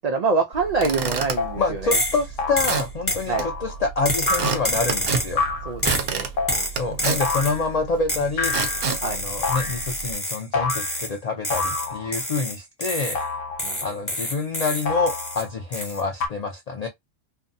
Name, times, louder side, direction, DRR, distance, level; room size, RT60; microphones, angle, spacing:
voice 1, 0.0-2.0 3.3-3.5 5.6-6.2 6.5-6.9 9.0-9.2 13.6-14.1, right 4 dB, 90° right, 0.3 m, -26 dB
Squeak / Wood, 0.5-10.1, right 6 dB, 60° right, 0.7 m, -31 dB
sound 1, 0.6-0.7 1.4-1.6 2.4-2.7 3.3-3.8 4.3-4.7 5.4-5.7 6.4-6.6 7.2-7.7 8.4-9.0 9.4-9.9 10.5-11.0 11.5-12.2 13.1-13.8 14.8-15.5 16.2-16.3, left 4 dB, 85° left, 1.1 m, -28 dB
voice 2, 1.6-5.4 6.8-13.2 13.8-16.9, left 4 dB, 65° left, 0.4 m, -27 dB
sound 2, 1.9-2.2 2.6-3.3 4.0-5.4 5.8-6.1 6.5-7.6 8.1-10.4 10.7-11.1 11.4-13.2 13.6-15.4 15.7-16.0, left 1 dB, 15° left, 0.7 m, -28 dB
2.6 x 2.2 x 2.5 m
omnidirectional pair, 1.3 m